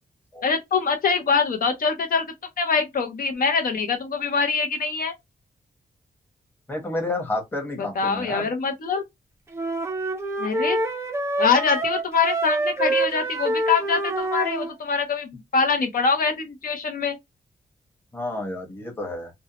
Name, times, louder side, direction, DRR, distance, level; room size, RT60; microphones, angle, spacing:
voice 1, 0.4-2.3 2.6-5.1 8.0-9.0 10.4-10.8 11.4-17.2, left 5 dB, 60° left, 0.6 m, -24 dB
voice 2, 6.7-8.5 18.1-19.3, left 2 dB, 15° left, 0.9 m, -30 dB
sound 1, 9.5-14.7, right 2 dB, 15° right, 0.4 m, -26 dB
2.6 x 2.0 x 2.7 m
wide cardioid pair, 170°, 16 cm